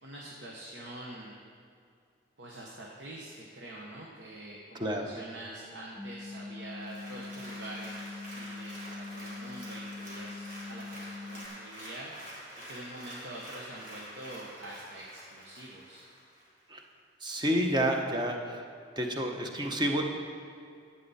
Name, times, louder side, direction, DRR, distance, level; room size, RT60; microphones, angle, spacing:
voice 1, 0.0-1.4 2.4-12.1 12.7-16.0, right 1 dB, 85° right, -3 dB, 1.1 m, -45 dB
voice 2, 4.7-5.1 16.7-16.8 17.2-18.7 19.0-20.0, equal, 25° right, 3 dB, 0.9 m, -29 dB
sound 1, 6.0-11.5, left 3 dB, 20° left, 0.5 m, -43 dB
Applause, 6.7-16.5 16.9-17.0, equal, 50° right, 2.9 m, -47 dB
11.5 x 8.3 x 4.2 m, 2.3 s
head